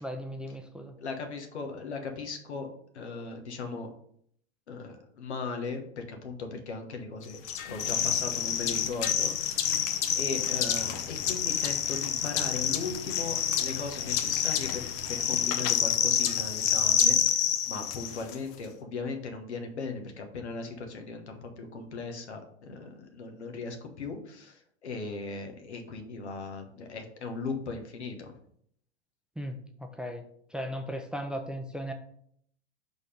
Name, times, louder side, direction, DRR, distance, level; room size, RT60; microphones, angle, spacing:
voice 1, 0.0-0.9 29.4-31.9, equal, 5° right, 5 dB, 0.5 m, -37 dB
voice 2, 1.0-2.7 2.9-3.9 4.7-7.4 7.6-9.7 10.1-28.3, left 4 dB, 80° left, 4 dB, 1.3 m, -38 dB
sound 1, 7.4-18.3, left 9 dB, 40° left, 0.8 m, -28 dB
5.4 x 4.1 x 5.0 m, 0.66 s
hypercardioid pair, 95°, 33 cm